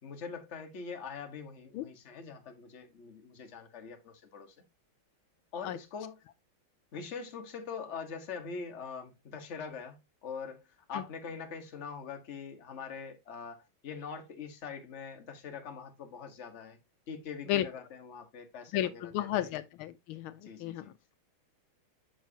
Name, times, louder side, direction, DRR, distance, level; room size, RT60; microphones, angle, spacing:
voice 1, 0.0-4.5 5.5-6.2 6.9-10.6 10.9-16.8 17.1-19.5 20.4-20.9, left 5 dB, 40° left, 1.3 m, -43 dB
voice 2, 18.7-21.1, left 12 dB, 85° left, 1.4 m, -33 dB
7.2 x 6.1 x 2.7 m
omnidirectional pair, 2.3 m